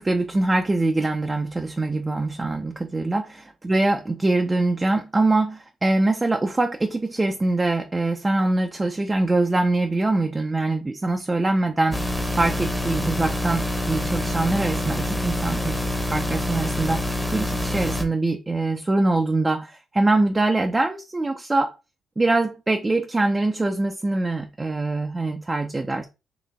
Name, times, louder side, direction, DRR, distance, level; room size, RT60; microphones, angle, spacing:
voice 1, 0.0-3.3 3.6-12.0 12.4-17.0 17.3-21.7 22.2-26.0, right 2 dB, 20° right, 0.5 m, -23 dB
sound 1, 11.9-18.0, left 1 dB, 5° left, 0.9 m, -26 dB
4.0 x 3.2 x 3.4 m
cardioid pair, 90°, 0 cm